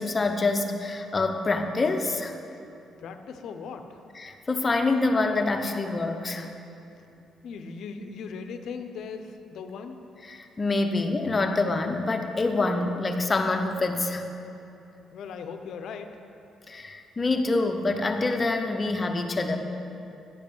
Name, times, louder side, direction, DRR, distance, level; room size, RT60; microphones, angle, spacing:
voice 1, 0.0-2.3 4.1-6.5 10.2-14.3 16.7-19.6, left 3 dB, 30° left, 5 dB, 0.8 m, -26 dB
voice 2, 3.0-4.0 7.4-10.0 15.1-16.1, left 5 dB, 75° left, 7 dB, 0.6 m, -38 dB
9.7 x 5.2 x 7.1 m, 2.8 s
cardioid pair, 90°, 0 cm